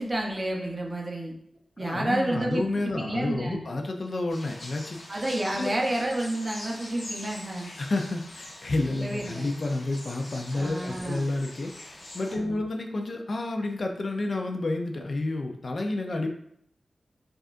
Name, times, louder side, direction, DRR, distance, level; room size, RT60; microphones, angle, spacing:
voice 1, 0.0-1.3 1.8-3.6 5.1-7.7 8.9-9.4 10.5-11.2 12.3-12.6, right 1 dB, 30° right, 0 dB, 0.7 m, -30 dB
voice 2, 1.8-5.1 5.6-5.7 7.8-16.3, left 2 dB, 55° left, 3 dB, 0.4 m, -30 dB
sound 1, 4.3-12.3, left 1 dB, 85° left, 1.0 m, -44 dB
4.9 x 2.4 x 2.5 m, 0.69 s
wide cardioid pair, 105°, 0 cm